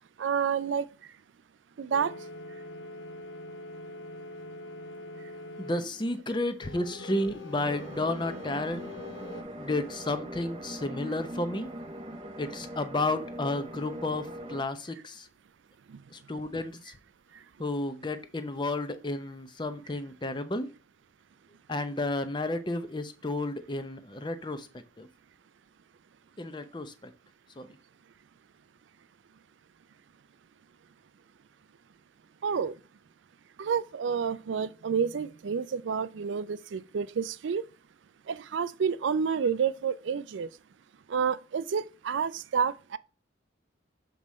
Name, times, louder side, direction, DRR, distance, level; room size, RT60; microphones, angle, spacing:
voice 1, 0.2-0.8 1.8-2.1 32.4-32.7 33.6-37.6 38.3-40.5 41.1-43.0, right 6 dB, 70° right, 0.4 m, -29 dB
sound 1, 1.9-6.3 6.6-9.4, left 1 dB, 80° left, 1.0 m, -43 dB
voice 2, 5.6-8.8 9.6-11.7 12.4-15.3 16.1-17.0 17.6-20.7 21.7-24.7 25.0-25.1 26.4-27.1 27.6-27.7, left 2 dB, 25° left, 0.7 m, -32 dB
sound 2, 7.6-14.6, right 1 dB, 25° right, 0.7 m, -41 dB
6.3 x 5.3 x 4.2 m
head